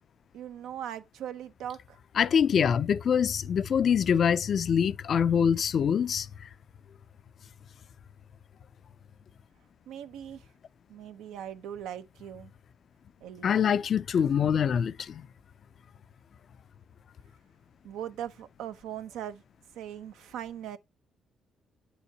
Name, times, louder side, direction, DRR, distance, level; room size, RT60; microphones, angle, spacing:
voice 1, 0.3-2.0 9.9-10.5 10.9-12.5 13.2-13.7 17.8-19.4 19.7-20.8, right 10 dB, 90° right, 0.9 m, -40 dB
voice 2, 2.2-6.3 13.4-15.3, left 7 dB, 55° left, 0.4 m, -24 dB
8.2 x 7.0 x 2.8 m
cardioid pair, 90°, 0 cm